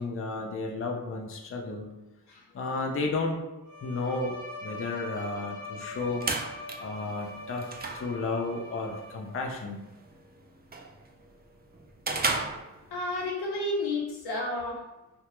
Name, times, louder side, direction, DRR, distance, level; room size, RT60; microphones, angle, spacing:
voice 1, 0.0-1.9 2.5-3.4 3.8-4.4 4.6-6.2 6.8-7.7 7.9-9.8, left 3 dB, 35° left, 1 dB, 0.5 m, -32 dB
Bowed string instrument, 3.6-9.4, left 2 dB, 55° left, 0.9 m, -42 dB
sound 1, 5.8-13.3, right 3 dB, 25° right, 0.4 m, -36 dB
voice 2, 12.9-14.8, left 2 dB, 85° left, -2 dB, 0.8 m, -31 dB
2.8 x 2.3 x 2.9 m, 1.0 s
cardioid pair, 60°, 38 cm